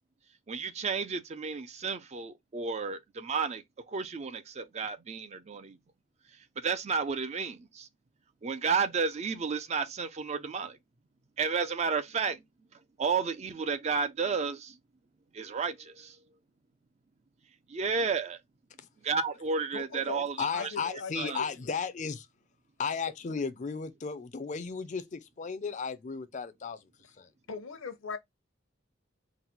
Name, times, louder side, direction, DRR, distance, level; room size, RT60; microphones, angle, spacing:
voice 1, 0.5-5.8 6.6-7.9 8.4-10.8 11.4-12.4 13.0-14.8 15.3-16.2 17.7-18.4 19.0-21.4, right 5 dB, 35° right, 0.4 m, -32 dB
voice 2, 19.7-20.3 20.5-21.5 27.5-28.2, left 4 dB, 75° left, 0.8 m, -39 dB
voice 3, 20.4-22.3 22.8-26.8 27.2-27.3, left 5 dB, 35° left, 0.5 m, -35 dB
4.0 x 2.0 x 4.3 m
head